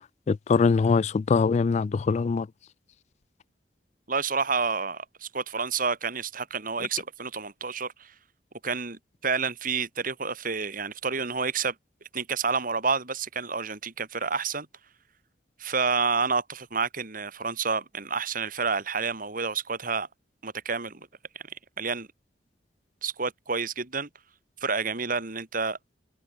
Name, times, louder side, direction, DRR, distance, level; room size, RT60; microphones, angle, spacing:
voice 1, 0.3-2.5, left 5 dB, 40° left, 0.3 m, -23 dB
voice 2, 4.1-8.1 8.6-11.7 12.1-14.7 15.6-20.1 20.4-21.1 21.8-22.1 23.0-24.1 24.6-25.8, right 5 dB, 50° right, 3.2 m, -29 dB
head